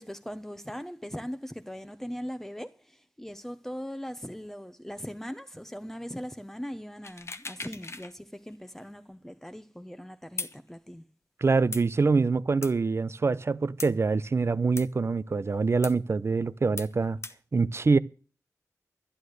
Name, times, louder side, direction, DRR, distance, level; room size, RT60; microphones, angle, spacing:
voice 1, 0.0-11.1, equal, 5° left, 0.9 m, -40 dB
sound 1, 7.0-8.1 8.5-8.6 10.4-10.6 11.7-11.8 12.6-12.7 13.8-13.9 14.8-14.9 15.8-16.0 16.8-16.9 17.2-17.4, left 3 dB, 50° left, 1.1 m, -38 dB
voice 2, 11.4-17.2 17.5-18.0, right 4 dB, 45° right, 0.7 m, -25 dB
11.5 x 11.5 x 6.6 m
wide cardioid pair, 75°, 6 cm